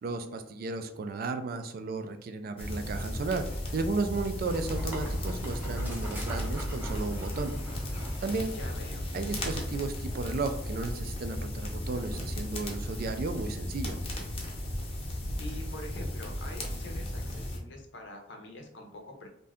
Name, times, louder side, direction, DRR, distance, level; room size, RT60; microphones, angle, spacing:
voice 1, 0.0-3.5 3.7-7.5 8.2-8.5 9.1-14.0, right 3 dB, 55° right, 7 dB, 0.3 m, -34 dB
sound 1, 2.6-17.6, left 1 dB, 30° left, 0.6 m, -35 dB
Dog, 4.4-8.6, equal, 10° right, 0.6 m, -37 dB
voice 2, 8.5-9.1 15.4-19.3, left 1 dB, 70° left, 3 dB, 0.6 m, -45 dB
2.6 x 2.2 x 3.4 m, 0.71 s
head